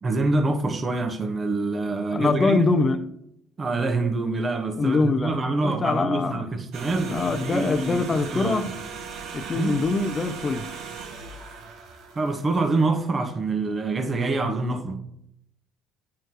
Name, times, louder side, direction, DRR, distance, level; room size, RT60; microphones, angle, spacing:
voice 1, 0.0-2.7 3.6-8.6 9.5-9.8 12.1-15.0, right 3 dB, 30° right, 1.2 m, -26 dB
voice 2, 2.1-3.1 4.8-6.5 7.1-8.7 9.3-10.7, left 3 dB, 30° left, 0.6 m, -24 dB
sound 1, 6.7-13.0 13.3-13.5, right 6 dB, 70° right, 1.4 m, -38 dB
9.4 x 4.5 x 4.7 m
cardioid pair, 95°, 0 cm